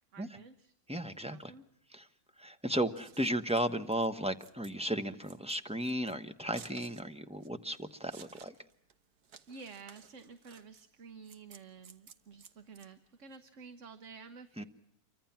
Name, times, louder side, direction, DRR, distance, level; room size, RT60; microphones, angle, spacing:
voice 1, 0.1-0.7 1.3-1.6 9.5-14.6, right 5 dB, 55° right, 10 dB, 1.5 m, -51 dB
voice 2, 0.9-1.5 1.9-2.1 2.4-8.5 14.6-14.7, right 1 dB, 5° right, 9 dB, 1.0 m, -34 dB
Scissors, 2.8-13.4, right 7 dB, 85° right, 1.8 m, -57 dB
28.0 x 24.5 x 5.9 m, 0.70 s
omnidirectional pair, 1.6 m